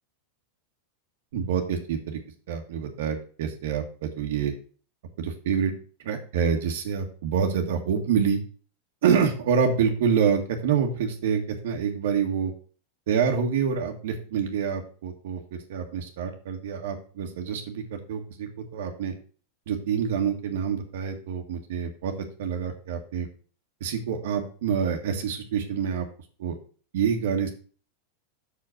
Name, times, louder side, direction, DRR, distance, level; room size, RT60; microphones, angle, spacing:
voice 1, 1.3-2.2 2.5-4.5 5.2-5.7 6.0-8.4 9.0-12.5 13.1-19.1 19.7-22.1 22.4-23.3 23.8-26.1 26.4-26.5 26.9-27.5, right 7 dB, 75° right, 3 dB, 1.7 m, -27 dB
6.2 x 5.1 x 6.4 m, 0.40 s
supercardioid pair, 145°, 0 cm